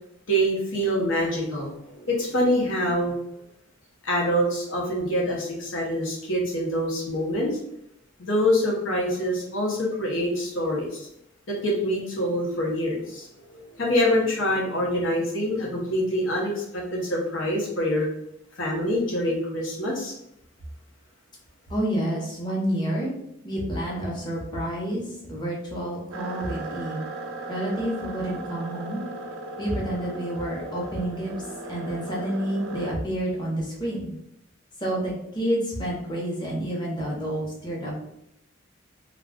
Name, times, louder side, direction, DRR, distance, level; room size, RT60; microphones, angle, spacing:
voice 1, 0.3-3.1 4.0-7.6 8.2-11.1 11.5-18.1 18.6-20.1, equal, 70° left, -3 dB, 0.9 m, -25 dB
voice 2, 21.7-23.1 23.4-27.0 27.5-29.0 29.6-31.3 31.7-34.1 34.8-38.0, right 1 dB, 20° left, -4 dB, 0.8 m, -29 dB
sound 1, 26.1-32.9, right 2 dB, 85° right, 0.4 m, -37 dB
2.4 x 2.3 x 3.5 m, 0.79 s
head